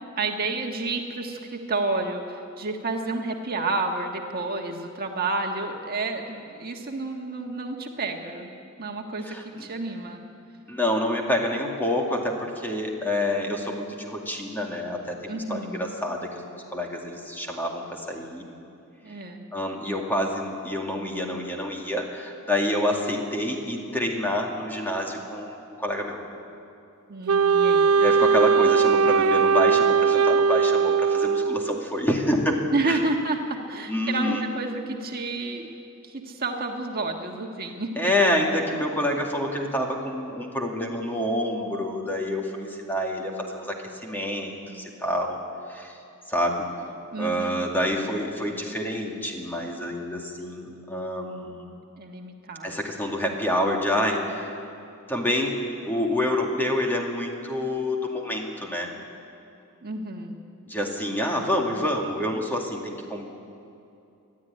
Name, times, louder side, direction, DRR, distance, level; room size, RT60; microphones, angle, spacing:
voice 1, 0.2-8.5 8.8-10.2 15.3-15.9 19.0-19.4 27.1-27.9 32.7-35.7 36.0-38.1 47.1-47.6 52.0-52.8 59.8-60.4, right 3 dB, 45° right, 2 dB, 1.5 m, -30 dB
voice 2, 9.2-9.7 10.7-18.4 19.5-26.2 28.0-33.0 33.9-34.5 38.0-43.8 44.0-45.4 45.7-46.0 46.3-46.7 47.2-51.7 52.6-54.6 55.1-58.9 60.7-63.3, left 1 dB, 10° left, 0 dB, 2.3 m, -27 dB
Wind instrument woodwind instrument, 27.3-31.9, right 5 dB, 70° right, 0.4 m, -20 dB
21.5 x 13.0 x 9.9 m, 2.6 s
head